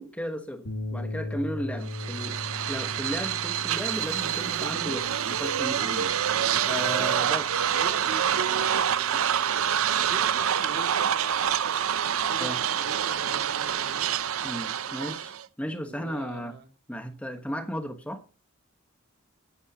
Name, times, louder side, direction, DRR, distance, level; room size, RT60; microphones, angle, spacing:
voice 1, 0.0-2.4 2.7-6.1 6.6-7.5 12.4-12.6 14.4-16.5 16.9-18.2, equal, 5° left, 6 dB, 1.2 m, -35 dB
sound 1, 0.7-9.1, left 1 dB, 70° left, 2.3 m, -39 dB
sound 2, 1.9-15.5, right 9 dB, 90° right, 0.6 m, -27 dB
voice 2, 2.0-2.5 7.1-9.4 9.9-11.9 12.2-14.1 14.9-15.2 15.8-16.7, right 3 dB, 50° right, 5 dB, 2.3 m, -43 dB
sound 3, 3.4-5.6 6.4-7.2 7.8-7.9 8.3-8.4, left 8 dB, 55° left, 5.9 m, -60 dB
18.0 x 10.0 x 2.9 m, 0.31 s
head